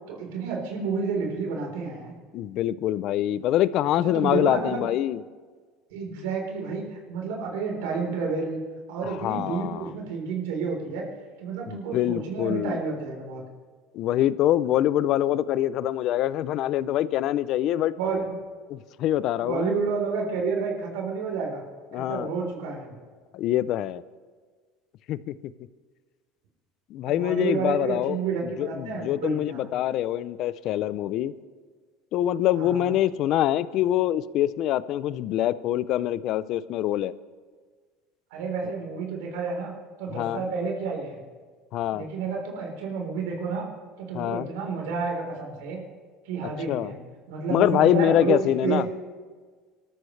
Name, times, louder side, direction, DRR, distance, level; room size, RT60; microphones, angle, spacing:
voice 1, 0.1-2.1 4.0-4.9 5.9-8.6 8.9-11.1 11.4-13.4 18.0-18.2 19.4-21.6 21.9-22.9 27.1-29.7 32.5-33.0 38.3-39.7 40.0-41.2 41.9-43.7 44.0-45.8 46.2-47.0 47.3-48.8, right 5 dB, 85° right, 0 dB, 4.0 m, -30 dB
voice 2, 2.3-5.2 9.0-9.9 11.7-12.8 13.9-17.9 18.7-19.7 21.9-22.3 23.3-24.0 25.1-25.3 26.9-28.2 28.6-31.3 32.1-37.1 40.1-40.4 41.7-42.1 44.1-44.5 46.7-46.9 47.5-48.9, left 12 dB, 50° left, 17 dB, 0.5 m, -25 dB
26.0 x 13.0 x 3.3 m, 1.5 s
cardioid pair, 140°, 0 cm